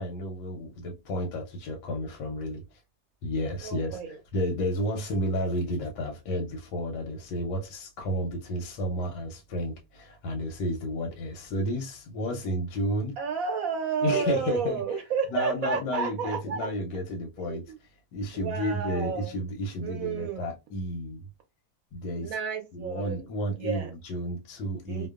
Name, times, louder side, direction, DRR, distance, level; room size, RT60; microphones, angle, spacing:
voice 1, 0.0-2.8 3.2-4.0 4.3-13.1 14.0-15.0 15.3-21.2 21.9-22.4 22.7-25.1, equal, 85° left, 1.2 m, -32 dB
voice 2, 3.6-4.2 13.2-16.7 17.4-17.8 18.3-19.4 19.8-20.5 22.2-23.3 23.5-23.9 24.9-25.1, right 6 dB, 70° right, 0.9 m, -31 dB
2.8 x 2.0 x 2.2 m
omnidirectional pair, 1.8 m